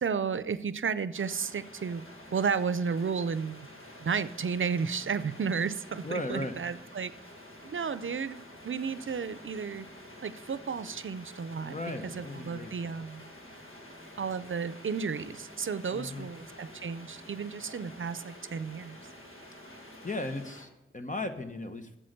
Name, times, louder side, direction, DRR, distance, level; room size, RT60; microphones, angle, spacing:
voice 1, 0.0-2.0 2.3-3.7 4.0-7.1 7.6-9.9 10.2-11.8 12.0-13.3 14.2-19.0, right 6 dB, 75° right, 14 dB, 0.5 m, -33 dB
sound 1, 1.1-20.7, left 1 dB, 85° left, 1.5 m, -49 dB
voice 2, 6.0-6.5 11.6-12.9 15.9-16.3 20.0-22.0, left 2 dB, 40° left, 7 dB, 1.0 m, -36 dB
7.8 x 7.6 x 6.6 m, 0.89 s
wide cardioid pair, 70°, 21 cm